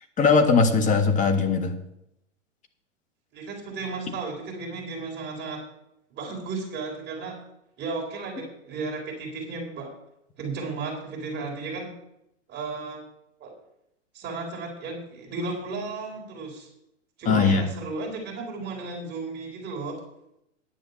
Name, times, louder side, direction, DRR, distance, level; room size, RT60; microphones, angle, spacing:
voice 1, 0.2-1.7 17.3-17.7, left 4 dB, 20° left, 7 dB, 1.5 m, -20 dB
voice 2, 3.3-5.6 6.1-7.4 7.8-9.9 10.4-11.9 12.5-13.1 13.4-13.5 14.1-16.7 17.2-20.0, right 3 dB, 30° right, 0 dB, 4.5 m, -34 dB
10.5 x 7.9 x 7.0 m, 0.80 s
hypercardioid pair, 120°, 37 cm